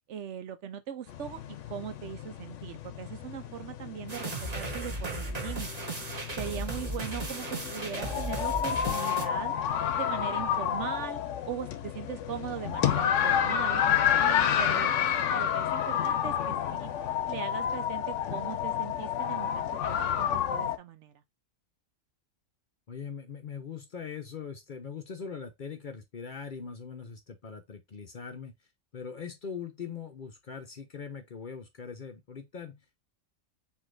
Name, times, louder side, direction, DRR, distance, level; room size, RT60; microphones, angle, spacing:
voice 1, 0.1-5.9 6.4-9.5 9.9-11.2 11.5-16.9 17.3-21.1, right 9 dB, 70° right, 0.9 m, -40 dB
sound 1, 1.1-20.8, left 9 dB, 75° left, 1.0 m, -30 dB
sound 2, 4.1-9.2, right 2 dB, 35° right, 1.1 m, -36 dB
voice 2, 22.9-28.5 28.9-32.8, left 6 dB, 50° left, 0.7 m, -41 dB
4.9 x 2.7 x 3.8 m
omnidirectional pair, 1.3 m